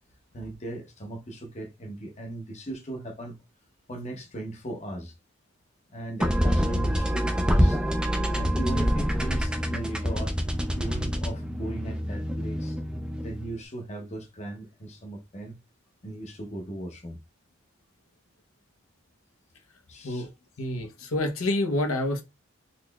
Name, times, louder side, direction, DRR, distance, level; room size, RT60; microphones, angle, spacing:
voice 1, 0.3-3.4 3.9-5.1 5.9-7.8 8.3-10.4 10.7-12.8 13.2-15.6 16.0-17.2 19.9-20.3, right 1 dB, 30° left, 0.7 m, -38 dB
sound 1, 6.2-13.5, equal, 5° right, 0.4 m, -26 dB
voice 2, 20.6-22.2, left 1 dB, 85° left, 0.9 m, -27 dB
4.0 x 3.0 x 2.3 m
head